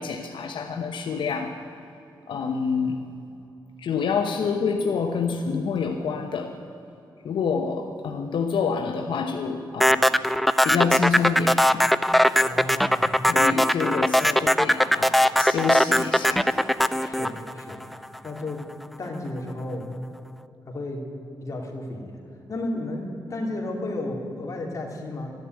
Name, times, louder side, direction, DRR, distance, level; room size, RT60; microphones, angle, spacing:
voice 1, 0.0-1.5 2.3-3.0 3.8-6.5 7.2-10.0 10.6-11.9 13.3-16.5, left 5 dB, 80° left, 4 dB, 1.0 m, -27 dB
sound 1, 9.8-18.2, equal, ahead, 0.4 m, -20 dB
voice 2, 12.4-13.1 17.0-17.8 18.2-18.6 19.0-19.8 20.7-21.0 21.4-22.2 22.5-25.3, left 2 dB, 40° left, 0 dB, 2.7 m, -33 dB
13.0 x 11.0 x 9.1 m, 2.8 s
wide cardioid pair, 130°, 8 cm